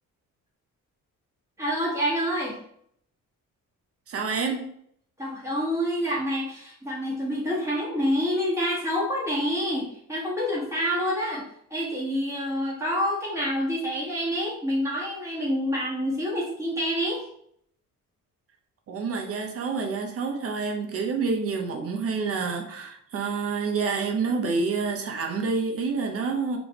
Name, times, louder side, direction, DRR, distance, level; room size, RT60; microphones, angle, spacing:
voice 1, 1.6-2.6 5.2-11.4 11.7-17.2, equal, 10° right, -6 dB, 1.6 m, -27 dB
voice 2, 4.1-4.7 18.9-26.6, right 4 dB, 40° right, 2 dB, 0.8 m, -28 dB
3.8 x 3.4 x 3.5 m, 0.69 s
cardioid pair, 160°, 34 cm